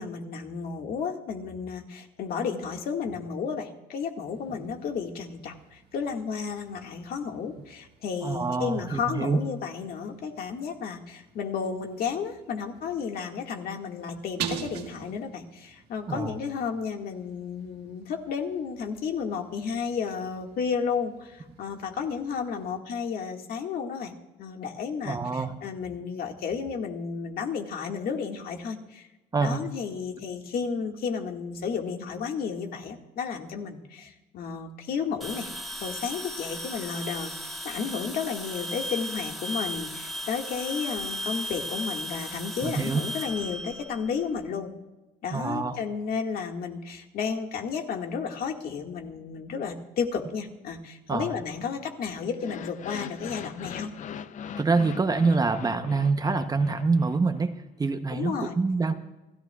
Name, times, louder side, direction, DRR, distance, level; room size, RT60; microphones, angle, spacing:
voice 1, 0.0-29.1 29.4-35.5 35.8-44.7 45.2-53.9 58.1-58.5, left 6 dB, 60° left, 3 dB, 1.8 m, -32 dB
sound 1, 4.3-22.8, right 8 dB, 75° right, 1.5 m, -46 dB
voice 2, 8.2-9.4 16.1-16.4 25.1-25.6 29.3-29.7 42.6-43.0 45.3-45.8 51.1-51.3 54.6-58.9, right 4 dB, 20° right, 9 dB, 0.7 m, -26 dB
sound 2, 35.2-44.5, equal, ahead, 2.0 m, -36 dB
sound 3, 52.3-57.5, left 8 dB, 45° left, 0.5 m, -41 dB
28.0 x 14.0 x 2.3 m, 1.1 s
cardioid pair, 110°, 17 cm